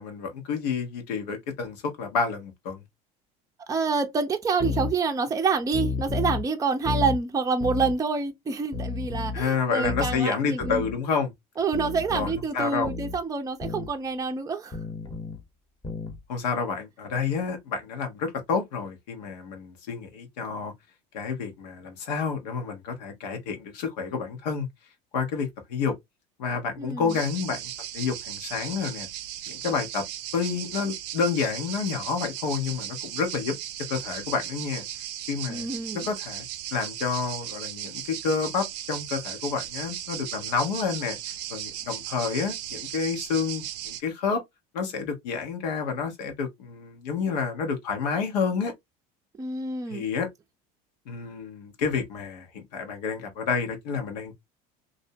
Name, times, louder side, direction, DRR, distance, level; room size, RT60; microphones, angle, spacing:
voice 1, 0.0-2.8 9.3-11.3 12.1-12.9 16.3-20.7 21.1-24.7 25.1-26.0 26.4-29.1 29.5-30.0 30.3-33.6 33.9-34.9 35.3-35.7 35.9-36.4 36.7-41.2 41.5-44.4 44.7-48.7 49.9-50.3 51.1-54.3, left 5 dB, 90° left, 0.9 m, -29 dB
voice 2, 3.7-10.8 11.6-14.8 26.8-27.1 35.5-36.0 49.4-50.0, right 4 dB, 15° right, 0.5 m, -27 dB
sound 1, 4.6-4.9 5.7-6.4 6.8-7.2 7.6-7.9 8.7-9.4 9.8-10.2 10.6-10.9 11.7-12.4 12.8-13.2 13.6-13.9 14.7-15.4 15.8-16.2, left 4 dB, 20° left, 0.8 m, -31 dB
sound 2, 27.1-44.0, right 12 dB, 90° right, 0.5 m, -37 dB
2.6 x 2.1 x 2.6 m
supercardioid pair, 100°, 20 cm